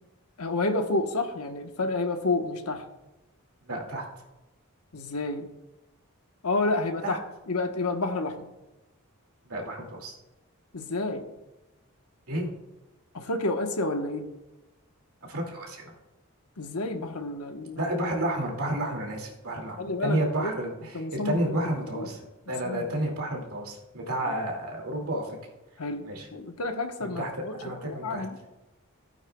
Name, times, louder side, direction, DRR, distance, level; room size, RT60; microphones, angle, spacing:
voice 1, 0.4-2.8 4.9-5.5 6.4-7.2 7.5-8.5 10.7-11.3 13.1-14.3 16.6-17.8 19.8-20.5 20.9-21.6 21.9-22.1 22.6-23.0 24.3-24.4 25.8-27.5 27.8-28.4, left 2 dB, 90° left, 5 dB, 1.1 m, -30 dB
voice 2, 3.6-4.0 7.0-7.2 9.5-10.1 12.3-12.5 15.2-15.9 17.8-22.2 22.5-25.4 26.0-26.3 27.0-28.2, right 1 dB, 80° right, 0 dB, 2.3 m, -31 dB
15.5 x 8.9 x 2.3 m, 1.0 s
head